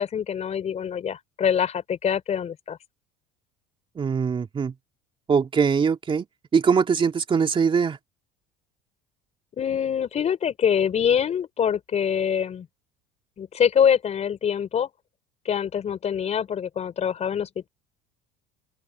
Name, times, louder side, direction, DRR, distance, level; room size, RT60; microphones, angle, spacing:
voice 1, 0.0-2.8 9.6-12.7 13.4-14.9 15.4-17.7, left 8 dB, 35° left, 4.7 m, -24 dB
voice 2, 3.9-4.7 5.3-6.2 6.5-8.0, right 6 dB, 25° right, 2.9 m, -22 dB
open air
supercardioid pair, 115°, 19 cm